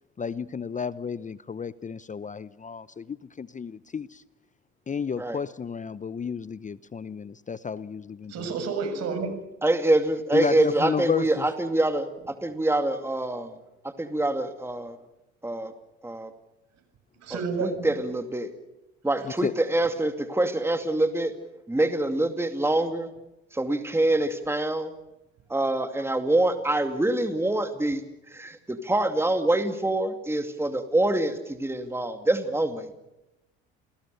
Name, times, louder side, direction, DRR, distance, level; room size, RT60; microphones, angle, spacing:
voice 1, 0.2-4.2 4.9-8.5 10.3-11.4 19.4-19.5, left 6 dB, 25° left, 17 dB, 0.8 m, -32 dB
voice 2, 8.3-9.4 17.2-17.9, right 4 dB, 60° right, 7 dB, 7.2 m, -30 dB
voice 3, 9.6-13.5 14.0-15.0 15.4-15.7 16.0-16.3 17.3-18.5 19.0-21.3 21.7-23.1 23.5-24.9 25.5-28.0 28.3-32.9, right 1 dB, 10° right, 7 dB, 2.4 m, -25 dB
29.0 x 20.0 x 6.8 m, 0.93 s
hypercardioid pair, 70°, 30 cm